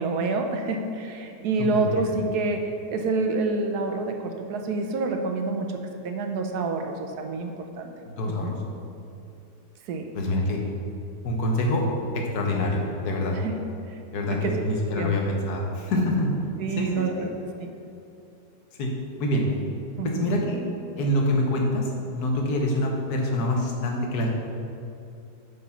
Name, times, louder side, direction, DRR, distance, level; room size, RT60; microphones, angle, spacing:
voice 1, 0.0-7.9 8.3-8.6 9.9-10.0 13.3-13.5 13.9-14.0 14.3-14.6 15.0-15.2 16.6-17.3 17.6-17.7 20.0-20.3, right 3 dB, 75° right, 4 dB, 1.3 m, -28 dB
voice 2, 1.6-2.0 8.1-8.6 10.1-10.7 11.2-13.4 14.1-16.5 16.8-17.3 18.8-19.5 20.0-20.6 21.0-24.3, left 1 dB, 70° left, 1 dB, 1.6 m, -26 dB
8.4 x 5.1 x 5.7 m, 2.7 s
omnidirectional pair, 1.7 m